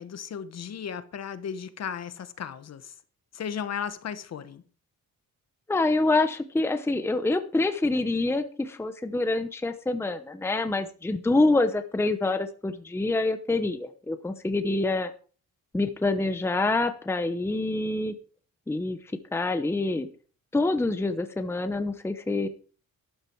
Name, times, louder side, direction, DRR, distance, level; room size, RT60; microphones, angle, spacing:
voice 1, 0.0-2.9 3.3-4.6, left 7 dB, 45° left, 1.2 m, -35 dB
voice 2, 5.7-15.1 15.7-18.1 18.7-19.0 19.3-20.1 20.5-22.5, left 2 dB, 5° left, 0.8 m, -26 dB
12.5 x 12.0 x 4.6 m
wide cardioid pair, 175°, 35 cm